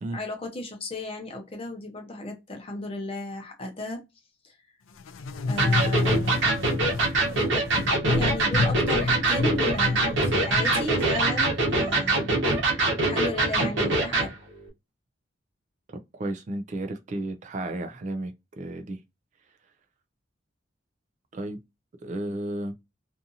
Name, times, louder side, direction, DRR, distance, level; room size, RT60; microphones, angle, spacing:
voice 1, 0.1-4.0 4.4-4.6 5.5-6.4 8.1-12.4 13.0-14.4, left 2 dB, 30° left, 0.7 m, -35 dB
sound 1, 5.0-11.8, left 3 dB, 90° left, 0.4 m, -29 dB
Electric guitar, 5.6-14.3, right 2 dB, 70° right, 1.0 m, -24 dB
voice 2, 15.9-19.0 21.3-21.6 22.0-22.7, right 1 dB, 35° right, 0.3 m, -33 dB
2.6 x 2.4 x 2.6 m
head